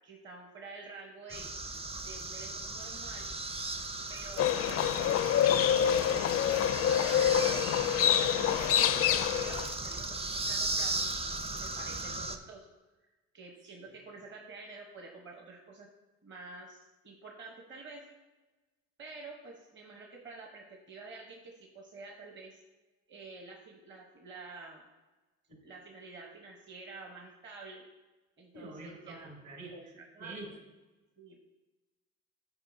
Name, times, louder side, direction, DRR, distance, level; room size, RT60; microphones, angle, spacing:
voice 1, 0.0-1.5 2.0-3.3 4.1-5.6 6.0-11.0 11.6-12.7 13.3-15.9 16.2-18.0 19.0-22.6 23.1-24.8 25.6-27.8 28.4-29.3 29.7-30.3 31.2-31.4, right 3 dB, 35° right, 0 dB, 1.0 m, -49 dB
sound 1, 1.3-12.4, right 2 dB, 20° right, 0.5 m, -37 dB
Livestock farm animals working animals, 4.4-9.7, left 9 dB, 45° left, 0.4 m, -26 dB
voice 2, 28.5-30.5, right 2 dB, 60° right, 0 dB, 2.2 m, -47 dB
9.8 x 4.5 x 2.7 m, 1.2 s
supercardioid pair, 70°, 34 cm